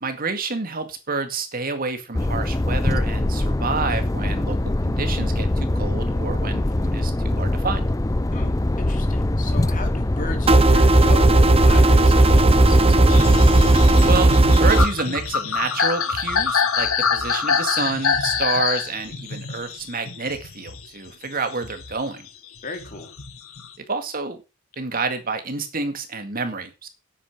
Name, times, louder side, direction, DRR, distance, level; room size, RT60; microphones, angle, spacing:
voice 1, 0.0-4.6 4.8-7.9 14.0-14.3 14.6-22.3 23.9-24.4 24.8-26.9, right 4 dB, 45° right, 7 dB, 2.1 m, -28 dB
sound 1, 2.1-14.2, left 1 dB, 15° left, 0.5 m, -23 dB
voice 2, 8.3-13.2 22.6-23.1, left 2 dB, 40° left, 5 dB, 3.1 m, -35 dB
sound 2, 10.5-14.9, right 2 dB, 25° right, 0.9 m, -15 dB
sound 3, 13.1-21.1 21.5-23.7, left 6 dB, 80° left, 1.7 m, -25 dB
9.9 x 8.6 x 6.1 m, 0.30 s
head